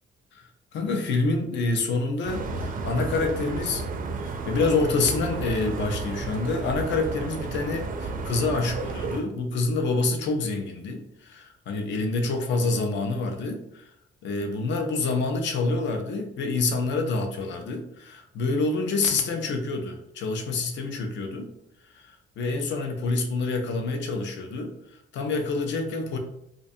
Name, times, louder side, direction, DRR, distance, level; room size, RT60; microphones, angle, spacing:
voice 1, 0.3-3.8 4.2-13.9 14.2-21.5 21.9-24.7 25.1-26.2, left 3 dB, 65° left, 5 dB, 0.5 m, -27 dB
sound 1, 2.2-9.2, right 3 dB, 45° right, 0.4 m, -32 dB
2.5 x 2.2 x 2.6 m, 0.78 s
cardioid pair, 90°, 20 cm